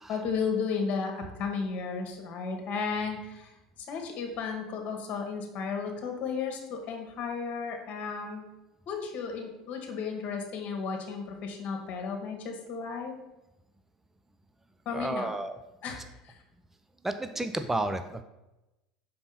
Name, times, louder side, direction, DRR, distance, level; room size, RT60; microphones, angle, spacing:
voice 1, 0.1-3.5 3.9-8.5 8.9-13.1 14.8-15.3 15.8-16.3, left 5 dB, 45° left, 3 dB, 1.5 m, -34 dB
voice 2, 14.9-15.5 17.0-18.2, right 2 dB, 10° right, 9 dB, 0.5 m, -31 dB
5.3 x 4.2 x 5.6 m, 0.96 s
figure-of-eight pair, 75°, 4 cm